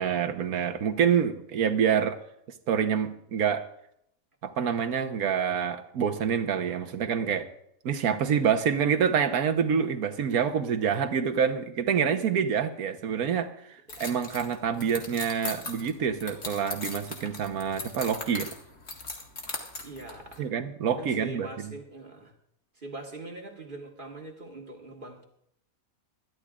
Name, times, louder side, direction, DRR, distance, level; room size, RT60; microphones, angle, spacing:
voice 1, 0.0-2.2 2.7-3.6 4.4-7.5 7.8-18.5 20.4-21.7, right 7 dB, 85° right, 7 dB, 1.5 m, -27 dB
sound 1, 13.9-20.4, left 3 dB, 55° left, 2.2 m, -39 dB
voice 2, 19.8-20.4 21.0-22.3 22.8-25.2, right 2 dB, 35° right, 1 dB, 1.9 m, -42 dB
21.5 x 13.0 x 2.5 m, 0.74 s
omnidirectional pair, 1.5 m